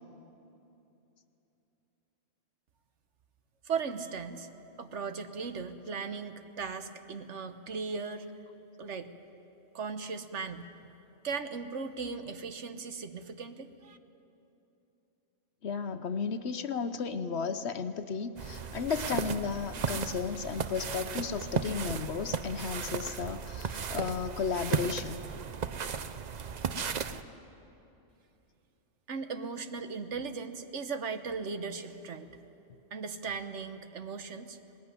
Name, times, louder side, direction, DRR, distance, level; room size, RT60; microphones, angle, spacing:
voice 1, 3.6-4.5 4.8-8.3 8.8-9.1 9.7-10.7 11.2-14.0 29.1-32.4 32.9-34.6, right 5 dB, 65° right, 9 dB, 1.3 m, -37 dB
voice 2, 15.6-25.2, left 5 dB, 60° left, 10 dB, 1.0 m, -34 dB
sound 1, 18.4-27.2, right 6 dB, 45° right, 0.6 m, -35 dB
20.0 x 19.5 x 9.7 m, 2.9 s
omnidirectional pair, 1.4 m